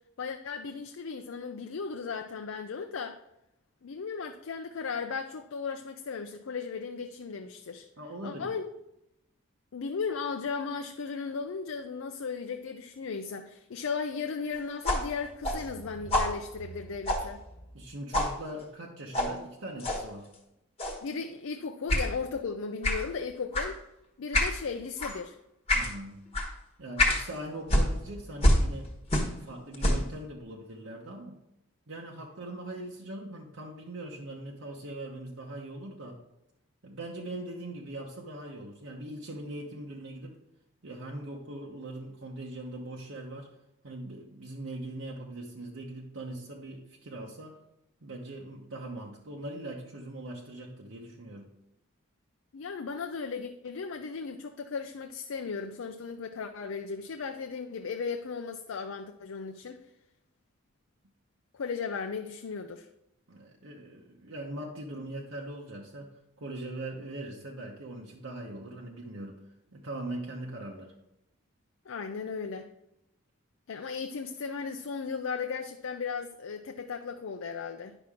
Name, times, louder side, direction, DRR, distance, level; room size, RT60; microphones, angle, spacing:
voice 1, 0.2-3.2 3.8-7.9 8.2-8.7 9.7-17.4 21.0-23.8 24.2-25.4 52.5-59.8 61.5-62.9 71.9-72.7 73.7-78.0, left 5 dB, 70° left, 6 dB, 0.5 m, -36 dB
voice 2, 8.0-8.5 17.7-20.3 25.7-26.3 26.8-28.9 29.4-31.4 31.9-36.2 36.8-40.4 40.8-43.5 43.8-47.6 48.0-51.5 63.3-66.1 66.4-69.4 69.7-70.9, right 1 dB, 70° right, -2 dB, 1.0 m, -41 dB
sound 1, 14.8-17.9 18.1-18.4 19.1-19.3 19.8-20.0 20.8-21.1 21.9-22.1 22.8-23.1 23.5-23.7 24.3-24.6 25.0-25.2 25.7-25.9 26.3-26.5 27.0-27.2 27.7-29.4 29.7-30.1, left 1 dB, 30° left, 1.1 m, -27 dB
9.9 x 5.9 x 3.6 m, 0.85 s
head